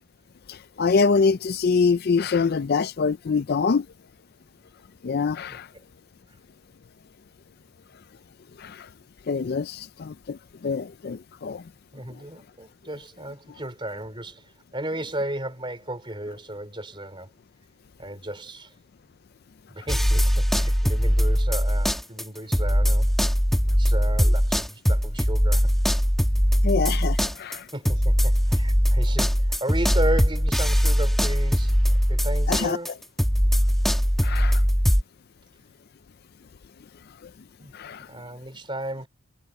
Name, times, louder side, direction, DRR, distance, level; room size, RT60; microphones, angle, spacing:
voice 1, 0.5-3.9 5.0-5.7 8.6-8.9 9.3-10.4 10.6-11.6 26.6-27.7 32.5-32.8 34.2-34.6 37.7-38.1, left 5 dB, 45° left, 0.4 m, -24 dB
voice 2, 11.9-17.3 18.0-18.7 19.7-23.1 23.7-25.7 27.7-33.0 37.6-37.7 38.1-39.1, right 1 dB, 20° right, 3.8 m, -34 dB
sound 1, 19.9-22.3 22.5-35.0, equal, ahead, 2.3 m, -21 dB
head